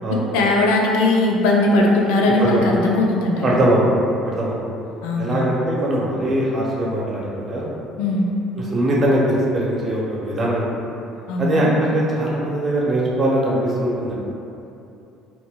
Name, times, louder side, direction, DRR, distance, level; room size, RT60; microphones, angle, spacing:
voice 1, 0.1-3.6 5.0-5.5 8.0-8.3 11.3-11.7, left 2 dB, 80° left, -1 dB, 0.4 m, -19 dB
voice 2, 2.2-2.6 3.4-4.6 5.2-7.7 8.6-10.7 11.4-14.1, right 1 dB, 35° right, -5 dB, 0.7 m, -21 dB
2.2 x 2.1 x 3.6 m, 2.7 s
supercardioid pair, 80°, 0 cm